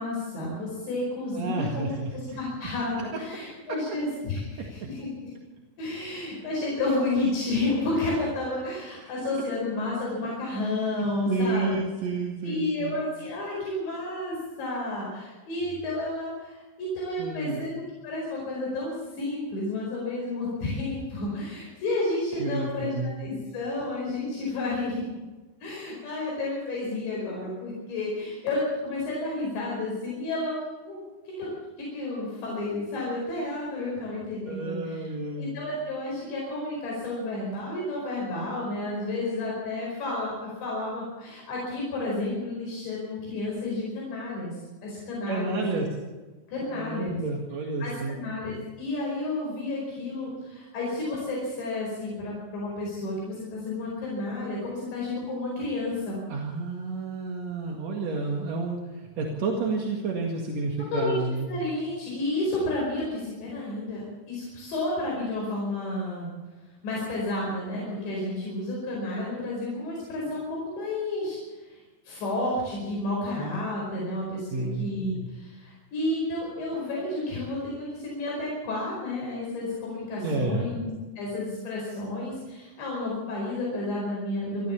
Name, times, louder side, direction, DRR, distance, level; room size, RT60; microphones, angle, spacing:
voice 1, 0.0-5.3 5.8-11.8 12.5-22.9 23.2-25.0 25.6-31.5 31.8-35.1 35.4-45.8 46.5-47.2 47.8-56.2 60.9-66.3 66.8-84.7, left 2 dB, 75° left, -4 dB, 7.2 m, -31 dB
voice 2, 1.4-2.4 3.0-3.1 4.6-4.7 9.0-9.1 11.0-12.9 17.2-17.6 22.4-23.1 34.5-35.5 45.3-45.9 46.6-48.2 56.3-61.5 74.5-74.8 80.2-80.7, right 3 dB, 50° right, 0 dB, 2.4 m, -30 dB
27.5 x 13.5 x 7.1 m, 1.2 s
omnidirectional pair, 5.2 m